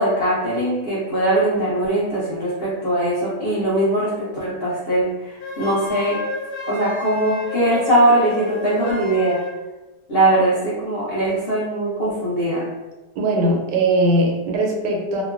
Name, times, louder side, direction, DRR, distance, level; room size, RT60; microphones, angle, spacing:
voice 1, 0.0-6.2 6.7-9.4 10.1-12.6, right 1 dB, 50° left, -10 dB, 0.7 m, -20 dB
Wind instrument woodwind instrument, 5.4-9.6, left 3 dB, 80° left, 1.1 m, -33 dB
voice 2, 13.1-15.2, right 1 dB, 85° right, 0 dB, 1.2 m, -20 dB
2.9 x 2.1 x 2.4 m, 1.1 s
omnidirectional pair, 1.8 m